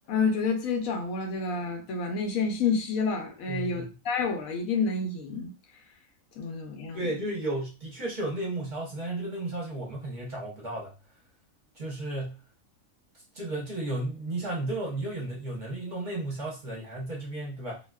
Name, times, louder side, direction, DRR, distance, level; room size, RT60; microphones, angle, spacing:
voice 1, 0.1-5.5 6.4-7.1, left 4 dB, 85° left, 1.1 m, -29 dB
voice 2, 3.5-3.9 6.9-10.9 11.8-12.4 13.3-17.8, right 2 dB, 40° right, 0.9 m, -33 dB
2.6 x 2.2 x 2.2 m
omnidirectional pair, 1.4 m